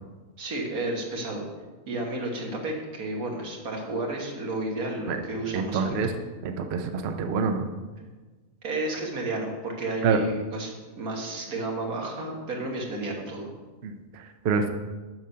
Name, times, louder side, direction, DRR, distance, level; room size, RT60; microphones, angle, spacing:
voice 1, 0.4-1.4 1.9-6.1 8.6-10.7 11.0-13.5, right 2 dB, 85° right, 0 dB, 2.0 m, -32 dB
voice 2, 5.5-6.1 6.4-7.7 10.0-10.2 13.8-14.7, right 5 dB, 55° right, 6 dB, 0.8 m, -26 dB
7.6 x 6.5 x 5.6 m, 1.3 s
omnidirectional pair, 1.5 m